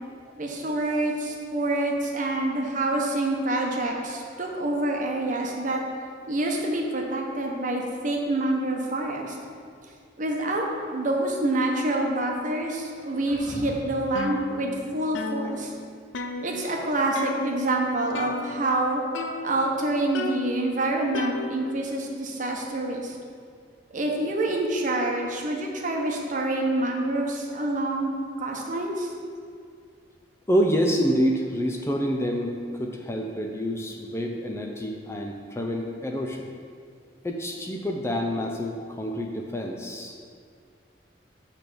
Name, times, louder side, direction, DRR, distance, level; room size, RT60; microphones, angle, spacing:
voice 1, 0.4-5.8 6.3-9.4 10.2-10.7 10.9-15.7 16.4-19.0 19.4-23.2 23.9-28.1 28.4-29.1, right 2 dB, 45° right, 0 dB, 0.9 m, -27 dB
sound 1, 10.6-11.4 12.9-14.1, equal, 55° left, 2.0 m, -42 dB
sound 2, 14.1-14.9 15.1-16.8 17.1-17.7 18.1-18.8 19.1-19.8 20.1-21.8, left 3 dB, 85° left, 0.5 m, -35 dB
voice 2, 30.5-36.5 37.2-40.1, equal, 15° left, 1 dB, 0.4 m, -27 dB
8.2 x 3.4 x 6.1 m, 2.2 s
head